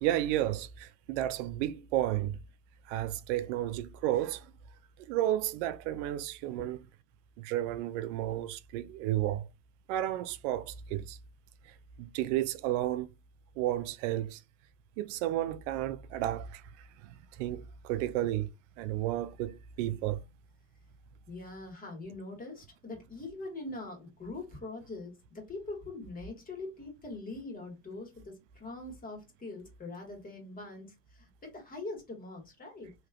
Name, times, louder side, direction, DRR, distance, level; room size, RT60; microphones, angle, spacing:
voice 1, 0.0-2.4 2.9-4.5 5.0-6.8 7.4-9.5 9.9-11.2 11.6-13.1 13.6-14.4 15.0-18.5 18.8-20.2, right 13 dB, 80° right, 0.5 m, -32 dB
voice 2, 21.3-32.9, left 2 dB, 25° left, 1.7 m, -43 dB
3.2 x 2.9 x 2.4 m
supercardioid pair, 105°, 36 cm